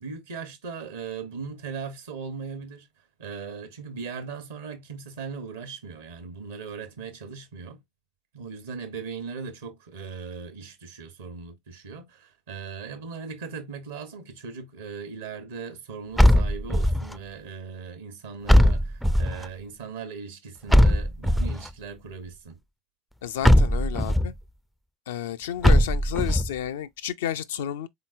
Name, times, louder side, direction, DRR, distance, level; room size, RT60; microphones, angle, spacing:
voice 1, 0.0-2.9 3.2-7.8 8.3-22.6, right 5 dB, 75° right, 1.0 m, -38 dB
sound 1, 16.2-17.1 18.5-19.4 20.7-21.7 23.4-24.3 25.6-26.5, equal, ahead, 0.3 m, -19 dB
voice 2, 23.2-24.3 25.1-27.9, left 10 dB, 70° left, 0.4 m, -31 dB
3.8 x 3.8 x 2.4 m
figure-of-eight pair, 65°, 0 cm